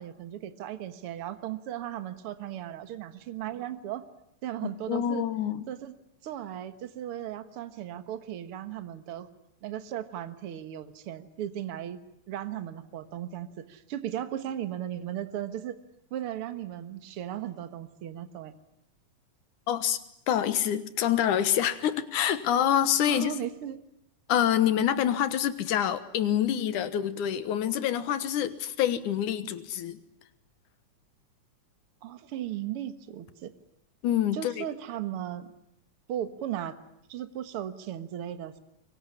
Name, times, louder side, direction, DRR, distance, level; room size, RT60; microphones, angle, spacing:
voice 1, 0.0-4.0 4.4-5.2 5.7-5.9 6.2-9.3 9.6-12.0 12.3-15.8 16.1-18.5 23.1-23.8 32.0-33.5 34.3-35.5 36.1-36.8 37.1-38.6, right 11 dB, 55° right, 10 dB, 2.0 m, -36 dB
voice 2, 4.9-5.6 19.7-20.0 20.3-23.3 24.3-30.0 34.0-34.6, left 10 dB, 85° left, 12 dB, 2.8 m, -26 dB
24.0 x 23.5 x 9.9 m, 0.77 s
omnidirectional pair, 3.5 m